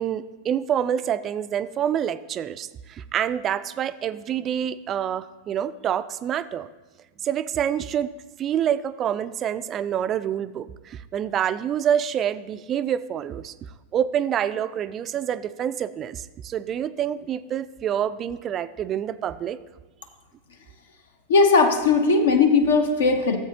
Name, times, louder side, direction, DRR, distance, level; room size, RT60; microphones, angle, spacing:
voice 1, 0.0-6.7 7.2-8.1 8.4-19.6, right 9 dB, 30° right, 15 dB, 0.3 m, -27 dB
voice 2, 21.3-23.4, left 4 dB, 65° left, 6 dB, 0.7 m, -18 dB
14.0 x 7.7 x 2.8 m, 1.2 s
figure-of-eight pair, 90°, 0 cm